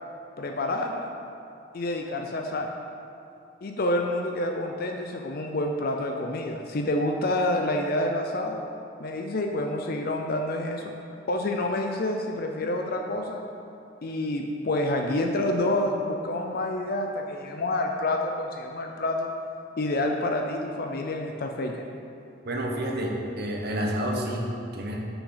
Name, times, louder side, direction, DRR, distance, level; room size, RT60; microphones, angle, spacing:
voice 1, 0.4-1.1 1.7-2.7 3.6-8.6 9.0-10.8 11.3-13.4 14.0-19.3 19.8-21.8, left 1 dB, 50° left, 3 dB, 0.5 m, -28 dB
voice 2, 22.4-25.0, equal, 55° right, 0 dB, 1.0 m, -29 dB
6.3 x 6.2 x 5.6 m, 2.6 s
head